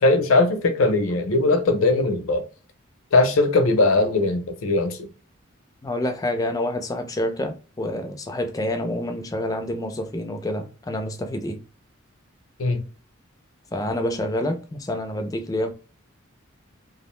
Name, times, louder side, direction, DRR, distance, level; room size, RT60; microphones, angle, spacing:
voice 1, 0.0-2.4 3.1-5.1 12.6-12.8, left 2 dB, 75° left, 0.5 m, -20 dB
voice 2, 5.8-11.6 13.7-15.7, left 1 dB, 15° left, 0.3 m, -27 dB
2.4 x 2.0 x 3.0 m
head